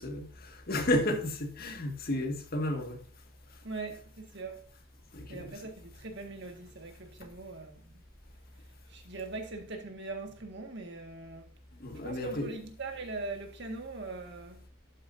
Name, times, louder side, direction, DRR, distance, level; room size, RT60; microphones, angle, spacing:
voice 1, 0.0-3.0 5.1-5.6 11.8-12.6, left 1 dB, 50° left, 1.9 m, -32 dB
voice 2, 3.6-4.7 5.3-8.0 8.9-11.5 12.0-14.7, right 3 dB, 60° right, 1.8 m, -41 dB
12.0 x 8.6 x 2.7 m
head